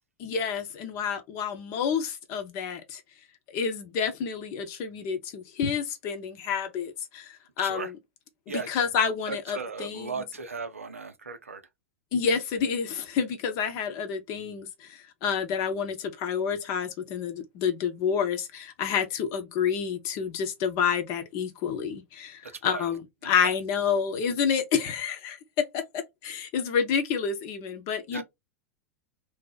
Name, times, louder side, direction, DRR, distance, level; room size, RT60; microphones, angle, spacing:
voice 1, 0.2-3.0 3.5-8.0 8.5-10.2 12.1-28.2, left 7 dB, 45° left, 0.8 m, -29 dB
voice 2, 7.6-7.9 8.5-8.7 9.3-11.6 22.4-22.9 23.2-23.3 28.1-28.2, right 4 dB, 80° right, 0.5 m, -36 dB
2.7 x 2.0 x 3.9 m
figure-of-eight pair, 90°, 7 cm